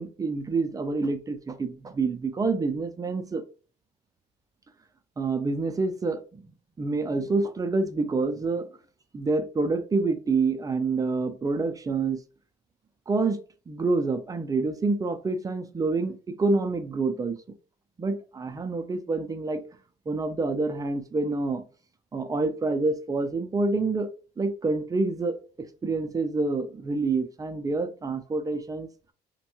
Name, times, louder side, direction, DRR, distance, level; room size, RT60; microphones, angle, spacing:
voice 1, 0.0-3.4 5.2-6.5 6.8-8.7 9.1-12.2 13.1-13.4 13.7-17.4 18.0-19.6 20.1-21.6 22.1-24.1 24.4-28.9, right 3 dB, 20° right, 0.4 m, -27 dB
3.0 x 2.2 x 3.0 m
cardioid pair, 110°, 17 cm